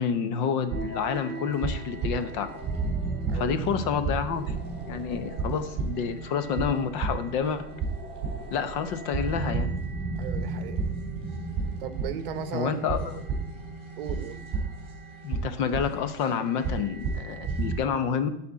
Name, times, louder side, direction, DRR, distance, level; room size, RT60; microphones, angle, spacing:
voice 1, 0.0-2.5 3.3-4.5 4.9-7.7 8.5-9.7 12.5-13.2 15.2-18.3, left 7 dB, 45° left, 10 dB, 0.8 m, -29 dB
sound 1, 0.7-17.8, right 4 dB, 15° right, 3.8 m, -33 dB
voice 2, 10.1-10.8 11.8-13.0 14.0-14.4, right 9 dB, 55° right, 11 dB, 0.9 m, -36 dB
10.0 x 4.3 x 7.4 m, 0.77 s
supercardioid pair, 170°, 34 cm